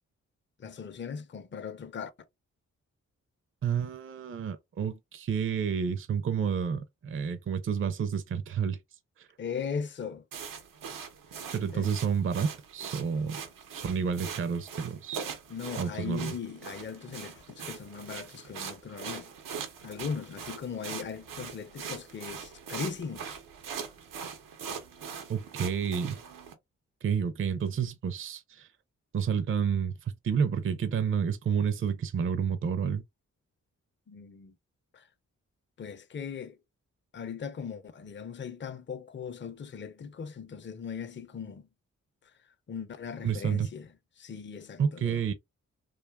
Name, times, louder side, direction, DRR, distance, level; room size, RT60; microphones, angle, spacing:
voice 1, 0.6-2.1 9.4-10.2 11.7-11.9 15.5-19.3 19.8-23.4 34.1-34.5 34.9-35.1 35.8-36.6 37.1-41.7 42.7-43.9 44.2-45.3, left 6 dB, 35° left, 0.5 m, -39 dB
voice 2, 3.6-8.8 9.2-9.3 11.5-13.4 13.7-15.2 15.8-16.3 25.3-26.2 27.0-28.7 29.1-33.0 43.2-43.7 44.8-45.3, right 7 dB, 40° right, 0.5 m, -30 dB
sound 1, 10.3-26.5, right 7 dB, 90° right, 0.7 m, -42 dB
2.7 x 2.3 x 2.2 m
cardioid pair, 50°, 32 cm